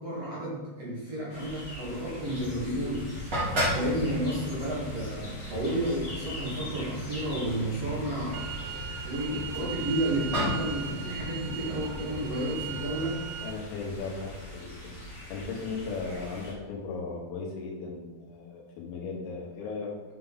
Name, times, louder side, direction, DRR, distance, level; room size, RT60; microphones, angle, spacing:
voice 1, 0.0-3.1 3.4-8.7 9.0-13.2, right 1 dB, 50° right, -7 dB, 2.1 m, -32 dB
sound 1, 1.3-16.5, left 1 dB, 30° left, 2.4 m, -43 dB
sound 2, 2.4-13.1, equal, 30° right, 2.4 m, -36 dB
sound 3, 8.3-13.5, right 9 dB, 85° right, 3.4 m, -39 dB
voice 2, 13.4-20.2, left 4 dB, 85° left, -1 dB, 3.9 m, -37 dB
8.1 x 6.7 x 4.0 m, 1.2 s
omnidirectional pair, 5.7 m